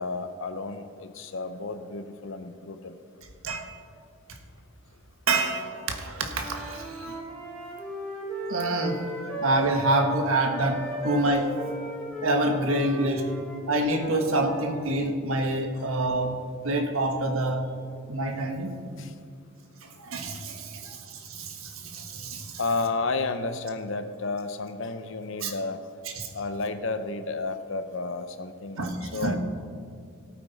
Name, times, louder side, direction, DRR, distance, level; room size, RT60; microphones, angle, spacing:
voice 1, 0.0-3.0 19.0-19.1 22.6-25.8 26.3-29.4, left 3 dB, 65° left, 10 dB, 0.7 m, -32 dB
voice 2, 5.3-7.2 8.5-9.1 9.4-11.6 12.2-13.3 13.7-17.7 18.1-18.8 19.8-22.6 25.4-25.5 26.2-26.3 28.8-29.4, right 2 dB, 80° right, 4 dB, 1.4 m, -27 dB
Wind instrument woodwind instrument, 6.2-10.1 10.5-14.9, right 1 dB, 5° left, 3.7 m, -36 dB
17.0 x 8.6 x 4.1 m, 2.2 s
head